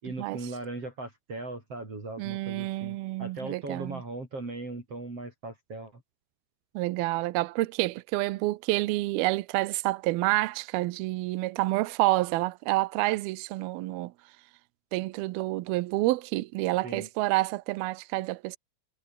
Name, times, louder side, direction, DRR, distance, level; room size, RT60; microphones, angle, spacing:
voice 1, 0.0-6.0 16.8-17.1, right 2 dB, 35° right, 6.7 m, -38 dB
voice 2, 2.2-4.0 6.7-14.1 14.9-18.6, right 19 dB, 75° right, 2.4 m, -28 dB
omnidirectional pair, 4.8 m